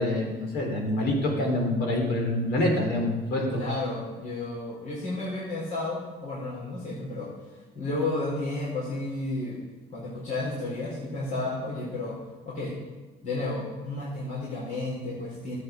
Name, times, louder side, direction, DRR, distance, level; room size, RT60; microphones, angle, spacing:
voice 1, 0.0-3.6, left 1 dB, 75° left, 1 dB, 3.6 m, -26 dB
voice 2, 3.6-7.3 7.7-9.6 9.9-12.2 12.4-12.7 13.2-15.6, left 2 dB, 50° left, -6 dB, 4.3 m, -32 dB
12.0 x 8.1 x 6.9 m, 1.3 s
cardioid pair, 110°, 17 cm